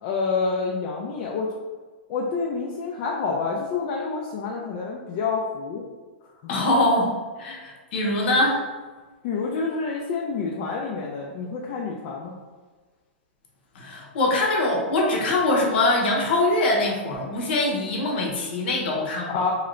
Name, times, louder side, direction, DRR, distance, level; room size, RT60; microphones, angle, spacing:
voice 1, 0.0-1.5 2.1-5.8 6.6-6.7 7.5-7.6 9.2-12.3 19.3-19.5, left 4 dB, 45° left, -2 dB, 0.4 m, -28 dB
voice 2, 6.5-8.7 13.7-19.4, left 2 dB, 60° left, -1 dB, 0.9 m, -23 dB
2.8 x 2.5 x 3.1 m, 1.3 s
hypercardioid pair, 140°, 6 cm